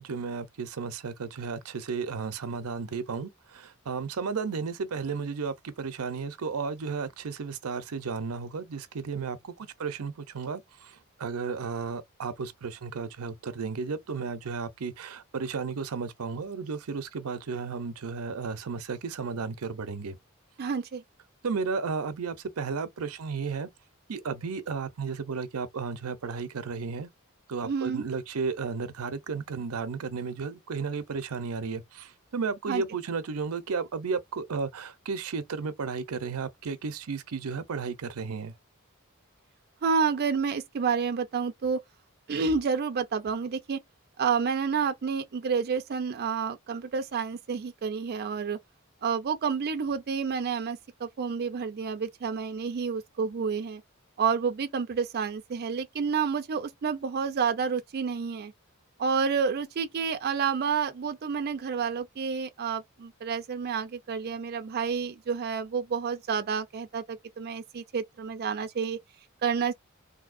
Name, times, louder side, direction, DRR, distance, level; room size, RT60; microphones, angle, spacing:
voice 1, 0.0-20.2 21.4-23.7 24.1-27.1 27.5-38.5, right 5 dB, 90° right, 0.6 m, -33 dB
voice 2, 20.6-21.0 27.6-28.0 32.7-32.8 39.8-41.8 42.3-43.8 44.2-48.6 49.0-53.8 54.2-58.5 59.0-69.0 69.4-69.7, right 6 dB, 45° right, 0.4 m, -29 dB
3.4 x 2.7 x 2.5 m
head